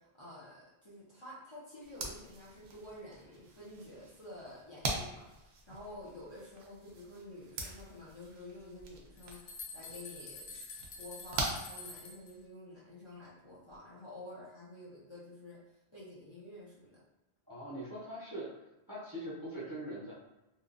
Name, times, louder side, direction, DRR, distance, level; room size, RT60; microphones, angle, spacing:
voice 1, 0.0-10.7 11.0-15.6 15.9-17.0, left 1 dB, 30° left, -8 dB, 0.7 m, -50 dB
sound 1, 1.8-12.5, right 2 dB, 80° right, 0.8 m, -43 dB
sound 2, 8.8-12.3, left 4 dB, 80° left, 0.9 m, -47 dB
voice 2, 17.5-18.5 18.9-20.1, right 1 dB, 25° right, -8 dB, 0.6 m, -42 dB
2.9 x 2.3 x 2.4 m, 1.0 s
omnidirectional pair, 1.1 m